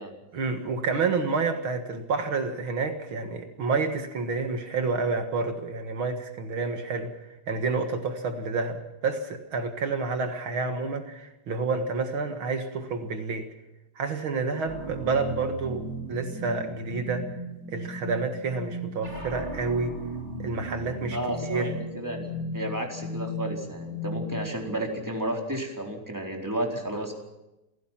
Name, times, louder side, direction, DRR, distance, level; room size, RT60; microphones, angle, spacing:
voice 1, 0.3-7.1 7.5-13.5 14.0-17.3 17.7-20.0 20.4-21.7, right 4 dB, 75° right, 6 dB, 2.5 m, -29 dB
sound 1, 14.7-24.6, equal, 55° right, 5.5 m, -36 dB
voice 2, 21.1-27.1, right 1 dB, 10° right, 1 dB, 4.1 m, -32 dB
28.5 x 17.0 x 5.9 m, 0.98 s
omnidirectional pair, 2.3 m